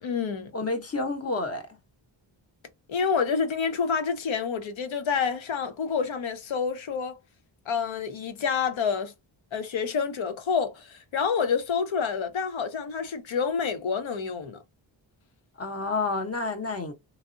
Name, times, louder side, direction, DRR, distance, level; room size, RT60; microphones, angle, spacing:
voice 1, 0.0-0.5 2.9-7.2 7.7-9.1 9.5-14.6, left 6 dB, 75° left, 0.7 m, -28 dB
voice 2, 0.5-1.7 15.6-16.9, left 3 dB, 30° left, 0.8 m, -29 dB
3.5 x 2.0 x 2.5 m
wide cardioid pair, 90°, 48 cm